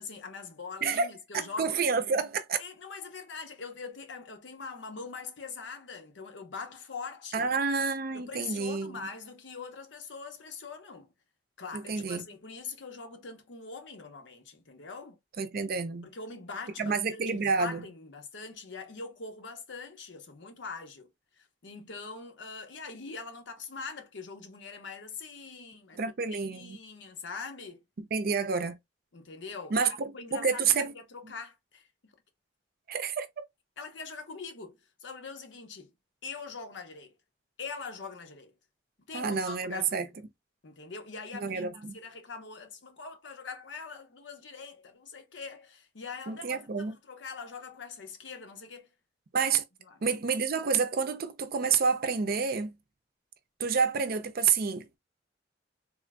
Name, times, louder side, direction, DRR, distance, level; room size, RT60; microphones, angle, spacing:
voice 1, 0.0-1.8 2.6-7.5 8.1-11.1 11.6-15.2 16.0-21.1 21.4-27.8 29.1-29.9 30.1-32.1 33.8-35.9 36.2-37.1 37.6-38.5 39.1-40.1 40.6-48.9 49.9-50.0, left 4 dB, 80° left, 0.8 m, -43 dB
voice 2, 1.3-2.6 7.3-9.0 11.7-12.2 15.4-16.1 16.8-17.8 26.0-26.8 28.0-28.7 29.7-30.9 32.9-33.3 39.1-40.1 41.3-42.0 46.3-47.0 49.3-49.6 50.0-52.7 53.6-55.0, right 5 dB, 55° right, 0.5 m, -29 dB
3.5 x 2.5 x 2.2 m
head